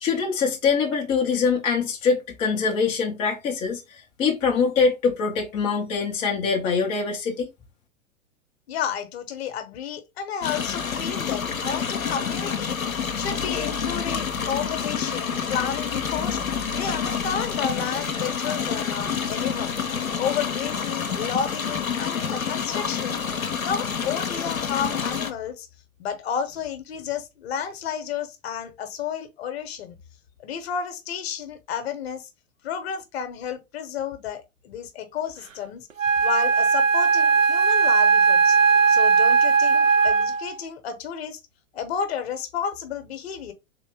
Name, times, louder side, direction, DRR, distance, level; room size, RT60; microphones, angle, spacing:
voice 1, 0.0-7.5, left 5 dB, 15° left, 0.5 m, -24 dB
voice 2, 8.7-19.8 20.2-23.2 23.6-25.7 26.0-30.0 30.4-32.3 32.6-35.9 36.2-38.6 38.9-41.4 41.7-43.5, left 7 dB, 50° left, 0.9 m, -31 dB
sound 1, 10.4-25.3, left 6 dB, 90° left, 0.7 m, -28 dB
Wind instrument woodwind instrument, 36.0-40.6, right 5 dB, 75° right, 0.8 m, -18 dB
3.7 x 2.9 x 3.4 m
figure-of-eight pair, 105°, 40 cm